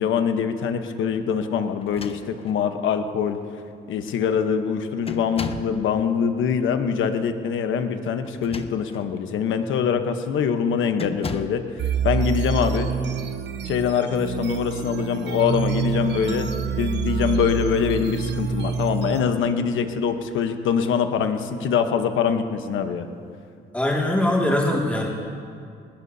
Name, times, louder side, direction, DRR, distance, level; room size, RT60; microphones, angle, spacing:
voice 1, 0.0-3.4 3.9-11.6 12.0-12.9 13.7-23.1, left 7 dB, 80° left, 7 dB, 1.1 m, -24 dB
sound 1, 1.8-2.7 3.6-3.7 4.0-4.4 5.1-5.8 8.2-9.1 9.7-9.9 11.0-11.7, left 4 dB, 30° left, 0.8 m, -36 dB
sound 2, 11.8-19.2, right 7 dB, 60° right, 0.9 m, -27 dB
sound 3, 16.3-18.9, equal, 30° right, 2.1 m, -39 dB
voice 2, 23.7-25.1, left 1 dB, 5° left, -3 dB, 2.3 m, -22 dB
20.5 x 18.5 x 2.8 m, 2.4 s
cardioid pair, 90°, 20 cm